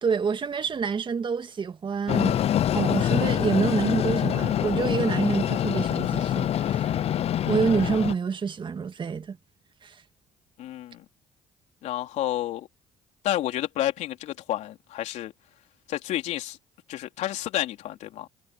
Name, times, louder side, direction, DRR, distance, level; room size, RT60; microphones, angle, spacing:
voice 1, 0.0-2.4 2.7-7.0 7.4-9.4 9.8-10.0, right 6 dB, 40° right, 2.0 m, -27 dB
Train, 2.1-8.1, left 11 dB, 55° left, 0.7 m, -25 dB
voice 2, 10.6-11.0 11.8-12.7 13.2-15.3 15.9-16.6 16.9-18.3, left 13 dB, 75° left, 3.6 m, -30 dB
supercardioid pair, 65°, 12 cm